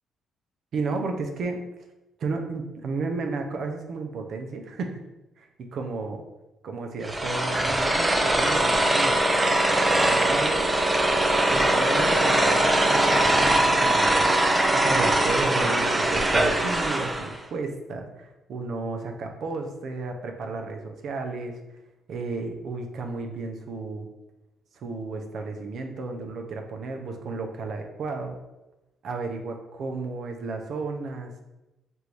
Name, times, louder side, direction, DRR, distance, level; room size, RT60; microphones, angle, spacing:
voice 1, 0.7-1.6 2.2-5.0 5.4-6.2 6.6-9.2 10.0-10.7 11.5-14.3 14.7-21.6 22.1-24.1 24.7-28.4 29.0-31.4, right 3 dB, 65° right, 4 dB, 0.6 m, -33 dB
sound 1, 7.0-17.4, right 1 dB, 15° right, 0.5 m, -21 dB
3.4 x 2.6 x 4.5 m, 0.98 s
cardioid pair, 90°, 0 cm